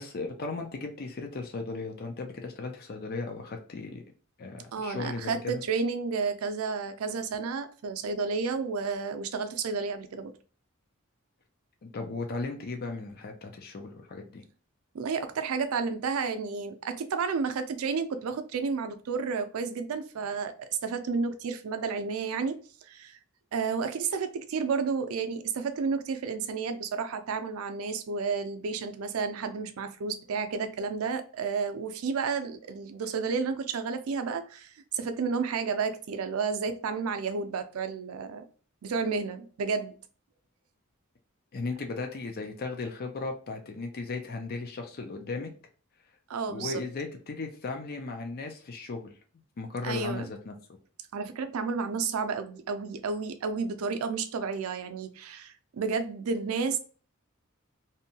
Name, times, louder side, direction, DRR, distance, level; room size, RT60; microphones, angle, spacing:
voice 1, 0.0-4.0 4.4-5.6 11.8-14.4 41.5-45.5 46.5-49.1 49.6-50.5, left 3 dB, 45° left, 0.4 m, -36 dB
voice 2, 4.7-10.3 14.9-23.2 23.5-38.4 38.8-40.0 46.3-46.8 49.8-50.3 51.1-56.8, right 5 dB, 85° right, 0.4 m, -31 dB
2.7 x 2.2 x 2.7 m
head